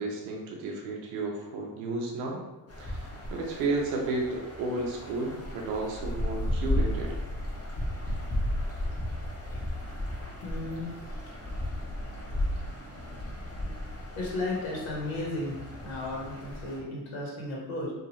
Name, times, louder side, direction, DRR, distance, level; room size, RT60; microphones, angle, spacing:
voice 1, 0.0-2.4 2.8-7.2, right 3 dB, 80° right, -1 dB, 0.6 m, -32 dB
sound 1, 2.7-16.8, left 1 dB, 30° left, 1.0 m, -34 dB
voice 2, 10.4-10.9 14.2-15.5 15.8-17.9, left 2 dB, 65° left, -2 dB, 1.1 m, -34 dB
2.7 x 2.2 x 2.9 m, 1.1 s
hypercardioid pair, 45°, 49 cm